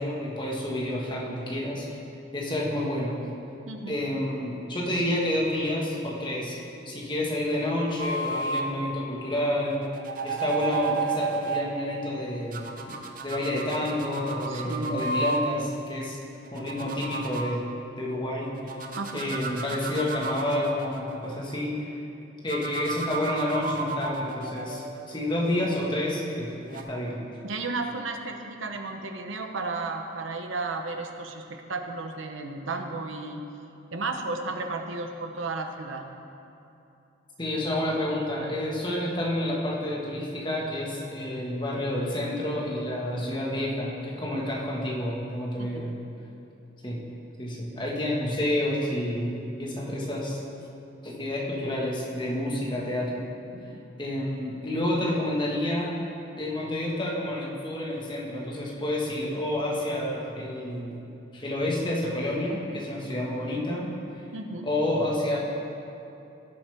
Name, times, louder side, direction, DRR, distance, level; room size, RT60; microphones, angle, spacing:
voice 1, 0.0-1.9 2.3-3.3 3.9-6.6 6.8-9.8 10.2-12.7 13.2-16.2 16.5-17.6 18.0-18.5 19.1-21.8 22.4-27.2 37.4-45.9 46.8-47.0 47.4-50.4 51.0-53.2 54.0-55.9 56.4-61.0 61.3-63.9 64.6-65.4, left 1 dB, 25° left, -4 dB, 1.5 m, -29 dB
sound 1, 8.0-8.7 9.7-11.7 12.5-15.4 16.4-17.5 18.6-21.7 22.5-25.7 26.6-26.8, right 3 dB, 45° right, 0.7 m, -33 dB
voice 2, 14.5-15.0 19.0-19.3 27.4-33.4 33.9-36.0 45.6-45.9 53.5-53.8 64.3-64.7, right 3 dB, 80° right, 5 dB, 0.9 m, -33 dB
17.0 x 7.2 x 3.5 m, 2.8 s
head